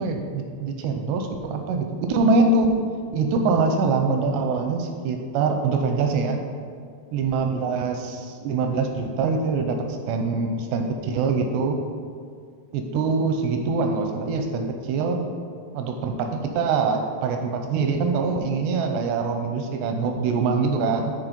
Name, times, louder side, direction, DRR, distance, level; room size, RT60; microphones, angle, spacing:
voice 1, 0.0-2.7 3.1-6.4 7.1-11.8 12.7-15.2 15.7-21.1, right 4 dB, 85° right, 4 dB, 2.5 m, -24 dB
9.8 x 4.5 x 5.2 m, 2.1 s
omnidirectional pair, 5.3 m